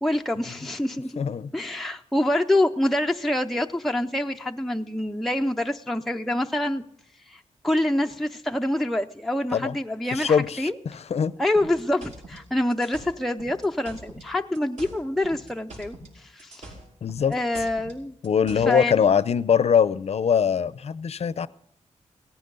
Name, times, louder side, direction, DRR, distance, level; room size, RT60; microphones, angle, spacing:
voice 1, 0.0-1.2 1.5-6.8 7.3-10.8 11.4-16.7 17.3-18.1 18.6-18.9, left 1 dB, ahead, 3 dB, 0.5 m, -26 dB
voice 2, 1.2-1.5 9.5-9.8 10.1-11.3 17.0-17.3 18.2-21.5, left 7 dB, 55° left, 16 dB, 0.6 m, -22 dB
sound 1, 11.5-14.3 14.5-16.1 16.4-18.8, right 1 dB, 70° right, 5.3 m, -43 dB
18.0 x 15.5 x 3.9 m, 0.72 s
wide cardioid pair, 135°, 13 cm